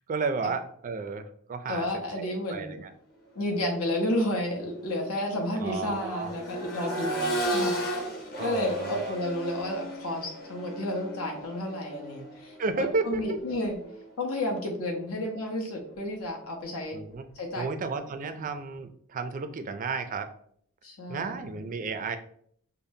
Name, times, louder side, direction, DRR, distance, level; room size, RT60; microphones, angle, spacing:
voice 1, 0.1-1.9 2.2-2.9 5.6-6.3 8.4-9.1 12.6-13.4 16.9-17.2 17.5-20.3 21.1-22.2, right 4 dB, 40° right, 8 dB, 0.4 m, -32 dB
voice 2, 1.7-2.7 3.3-8.1 8.4-13.8 14.2-17.0 17.3-17.7 18.2-18.5 20.8-21.5, left 1 dB, 85° left, 1 dB, 0.9 m, -31 dB
Accelerating revving vroom, 3.6-3.8 4.2-14.1 15.8-15.9, right 1 dB, 45° left, 1.1 m, -35 dB
5.1 x 2.1 x 2.7 m, 0.63 s
head